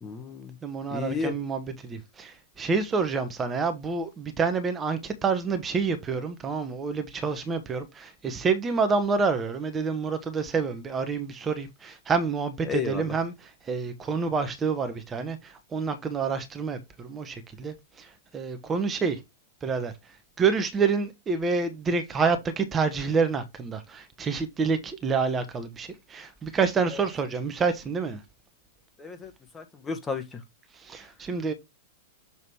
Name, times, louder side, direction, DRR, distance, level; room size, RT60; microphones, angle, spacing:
voice 1, 0.0-0.5 0.9-1.3 12.7-13.0 29.0-30.4, left 5 dB, 20° left, 1.4 m, -33 dB
voice 2, 0.6-19.2 19.6-19.9 20.4-28.2 30.7-31.5, right 5 dB, 20° right, 1.1 m, -28 dB
7.1 x 3.1 x 4.3 m
figure-of-eight pair, 95°, 0 cm